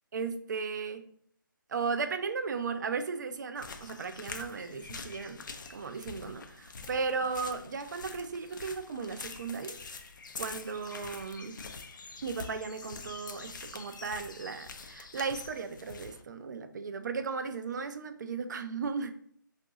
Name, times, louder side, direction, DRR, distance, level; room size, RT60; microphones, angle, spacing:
voice 1, 0.1-1.0 1.7-9.8 10.4-11.6 12.2-19.1, right 5 dB, 55° right, 9 dB, 0.4 m, -36 dB
sound 1, 3.6-16.2, left 4 dB, 60° left, 0.5 m, -45 dB
2.6 x 2.4 x 3.7 m, 0.63 s
figure-of-eight pair, 150°, 11 cm